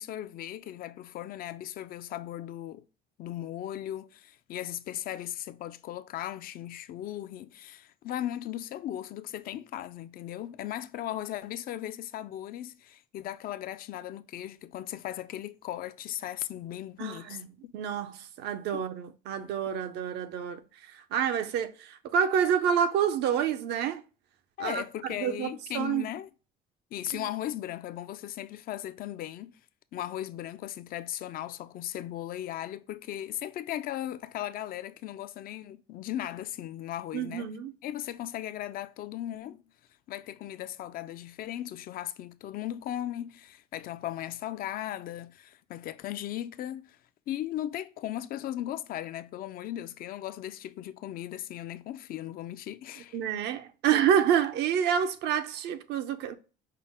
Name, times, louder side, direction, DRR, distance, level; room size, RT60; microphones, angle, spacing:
voice 1, 0.0-2.8 3.2-17.7 24.6-26.3 26.9-29.6 29.9-37.5 37.8-39.6 40.1-47.0 47.3-53.2, left 12 dB, 60° left, 0.4 m, -37 dB
voice 2, 17.0-17.4 17.7-20.6 20.9-24.0 24.6-26.1 27.1-27.3 37.1-37.7 53.1-56.3, right 8 dB, 85° right, 0.6 m, -28 dB
5.5 x 2.0 x 3.6 m
cardioid pair, 110°, 17 cm